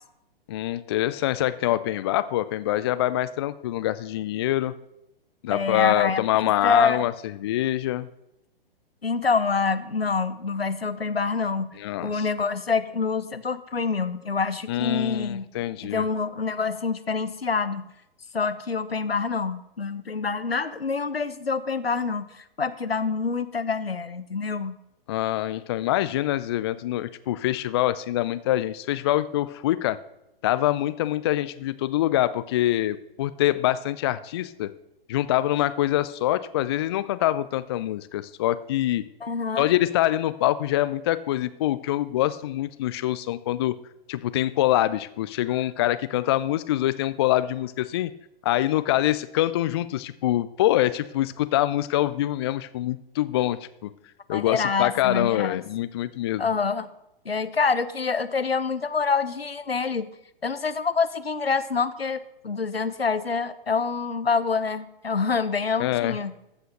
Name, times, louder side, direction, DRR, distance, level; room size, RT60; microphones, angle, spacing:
voice 1, 0.5-4.7 5.4-7.1 7.4-8.1 11.8-12.3 14.7-16.1 25.1-30.0 30.4-34.7 35.1-39.0 39.6-43.8 44.1-48.1 48.4-53.9 54.3-56.5 65.8-66.2, left 14 dB, 30° left, 14 dB, 0.4 m, -25 dB
voice 2, 5.5-7.0 9.0-11.7 12.0-15.5 15.8-17.9 18.3-24.7 39.2-39.7 54.3-55.6 56.4-56.9 57.2-60.1 60.4-66.3, left 5 dB, 85° left, 13 dB, 0.9 m, -26 dB
14.5 x 5.7 x 6.5 m, 0.85 s
figure-of-eight pair, 120°, 29 cm